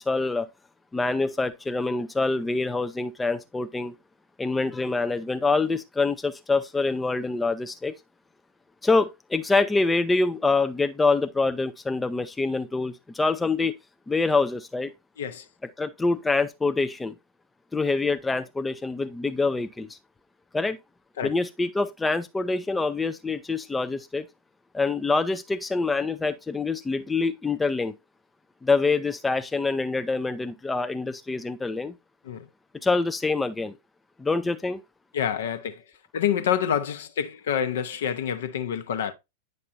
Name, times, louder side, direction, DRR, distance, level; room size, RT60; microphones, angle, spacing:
voice 1, 0.1-0.5 0.9-3.9 4.4-7.9 8.8-13.8 14.1-14.9 15.8-17.1 17.7-20.0 20.5-20.8 21.2-24.2 24.7-27.9 28.6-31.9 32.8-33.7 34.2-34.8, left 3 dB, 10° left, 0.4 m, -25 dB
voice 2, 15.2-15.5 21.2-21.3 32.2-32.5 35.1-35.8 36.1-39.1, left 8 dB, 60° left, 0.8 m, -27 dB
9.3 x 5.4 x 2.5 m
figure-of-eight pair, 90°, 0 cm